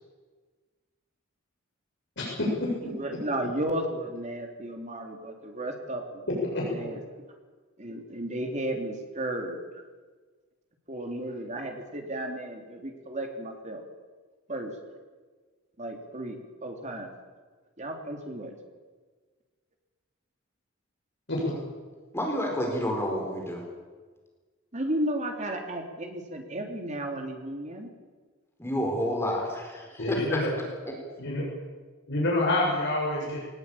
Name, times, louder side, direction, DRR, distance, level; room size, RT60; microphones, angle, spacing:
voice 1, 2.2-2.8 6.4-6.6 21.3-21.5 30.0-30.5 31.2-31.5 32.1-33.4, left 2 dB, 60° left, -3 dB, 7.0 m, -27 dB
voice 2, 2.8-6.2 6.6-7.0 7.8-9.6 10.9-13.8 14.5-14.7 15.8-17.1 17.8-18.5 24.7-27.9, right 1 dB, 35° right, 3 dB, 3.5 m, -34 dB
voice 3, 22.1-23.7 28.6-30.4, equal, 15° left, 0 dB, 4.5 m, -29 dB
21.5 x 19.5 x 8.8 m, 1.4 s
head